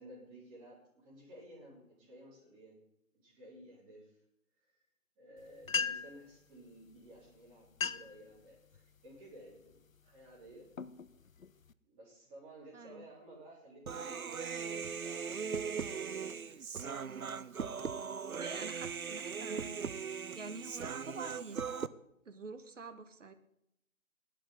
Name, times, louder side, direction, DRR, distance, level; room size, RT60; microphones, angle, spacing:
voice 1, 0.0-2.8 3.1-4.2 4.6-4.9 5.2-10.7 11.9-16.1 16.4-16.6, right 1 dB, 10° right, -6 dB, 3.6 m, -55 dB
sound 1, 5.4-5.5 5.6-6.3 7.1-7.3 7.6-8.2 8.7-9.1 9.7-10.0 10.5-11.7, left 6 dB, 70° left, 0.8 m, -37 dB
voice 2, 12.7-13.1 18.4-19.7 20.3-21.8 22.2-23.3, right 3 dB, 60° right, 9 dB, 1.4 m, -47 dB
Human voice, 13.9-21.9, right 6 dB, 75° right, 0.8 m, -39 dB
16.5 x 12.0 x 3.9 m, 0.80 s
figure-of-eight pair, 155°, 42 cm